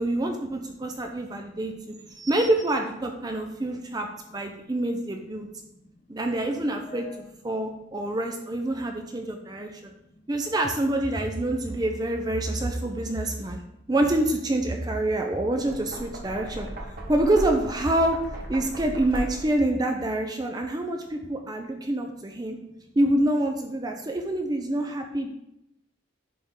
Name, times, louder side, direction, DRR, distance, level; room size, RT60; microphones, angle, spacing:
voice 1, 0.0-5.5 6.1-7.1 7.4-9.9 10.3-13.6 13.9-16.7 17.1-18.2 18.5-22.6 23.0-25.3, right 1 dB, 20° right, 4 dB, 0.5 m, -26 dB
voice 2, 0.5-2.3 3.4-4.0 4.3-4.7 5.0-5.1 5.4-6.1 6.6-7.2 8.0-8.2 8.8-10.3 13.2-13.9 21.0-21.5 21.8-21.9 22.3-22.9 24.3-24.4 25.2-25.3, left 2 dB, 30° left, 3 dB, 0.8 m, -55 dB
Knock, 15.5-19.7, right 1 dB, 45° right, 1.1 m, -36 dB
10.0 x 3.6 x 3.7 m, 0.85 s
head